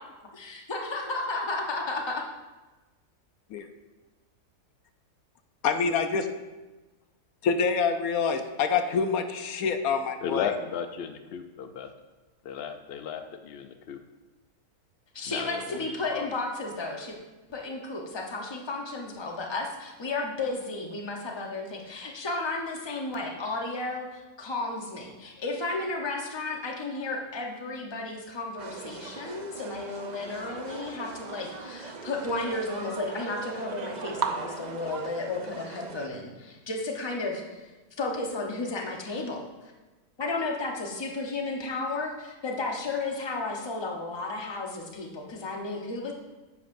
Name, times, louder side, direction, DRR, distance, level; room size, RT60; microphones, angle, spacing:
voice 1, 0.4-2.2 15.1-17.1 17.5-37.7 38.0-39.7 40.2-46.1, left 2 dB, 20° left, 1 dB, 0.8 m, -33 dB
voice 2, 5.6-6.3 7.4-10.5, left 5 dB, 70° left, 7 dB, 1.1 m, -26 dB
voice 3, 10.2-11.9 12.4-14.0 15.3-15.8 16.1-16.3, left 7 dB, 85° left, 7 dB, 0.5 m, -34 dB
sound 1, 28.6-36.1, right 5 dB, 75° right, 0.4 m, -38 dB
9.9 x 8.3 x 2.6 m, 1.2 s
omnidirectional pair, 1.6 m